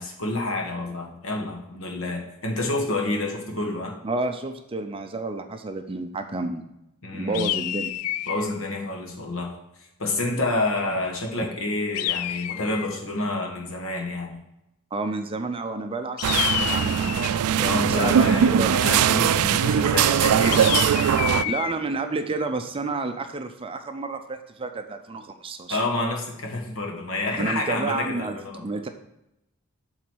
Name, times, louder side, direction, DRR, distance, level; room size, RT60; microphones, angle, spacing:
voice 1, 0.0-3.9 7.0-7.5 8.3-9.5 10.0-14.4 17.6-20.6 25.7-28.7, left 2 dB, 65° left, 1 dB, 1.5 m, -28 dB
voice 2, 4.0-6.6 7.1-8.0 14.9-18.8 21.4-25.8 27.4-28.9, right 3 dB, 25° right, 7 dB, 0.5 m, -30 dB
sound 1, 7.3-8.5 11.9-13.0 16.2-17.4 20.5-21.7, left 13 dB, 85° left, 0.3 m, -28 dB
sound 2, 16.2-21.4, right 8 dB, 80° right, 0.3 m, -21 dB
7.5 x 4.0 x 6.1 m, 0.85 s
head